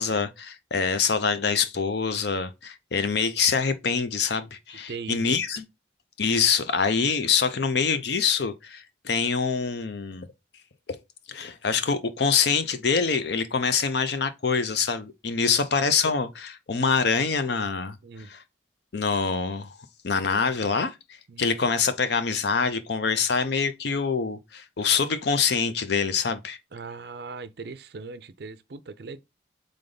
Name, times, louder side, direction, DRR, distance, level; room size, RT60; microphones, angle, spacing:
voice 1, 0.0-5.6 6.2-10.3 11.3-18.0 18.3-18.4 18.9-19.8 20.0-21.0 21.4-26.6, left 5 dB, 65° left, 0.6 m, -25 dB
voice 2, 4.7-5.4 15.6-15.7 18.0-18.3 21.3-21.5 26.7-29.2, right 4 dB, 60° right, 0.5 m, -39 dB
3.8 x 3.5 x 3.9 m
head